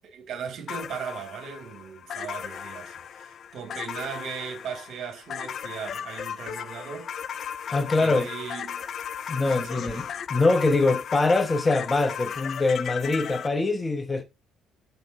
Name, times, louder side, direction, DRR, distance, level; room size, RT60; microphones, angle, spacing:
voice 1, 0.1-7.1 8.0-8.9 9.5-10.1, right 7 dB, 55° right, 3.3 m, -38 dB
sound 1, 0.7-13.5, left 8 dB, 55° left, 0.6 m, -36 dB
voice 2, 7.7-8.3 9.3-10.0 10.3-14.2, left 3 dB, 25° left, 1.2 m, -23 dB
6.1 x 5.4 x 6.0 m
hypercardioid pair, 55°, 0 cm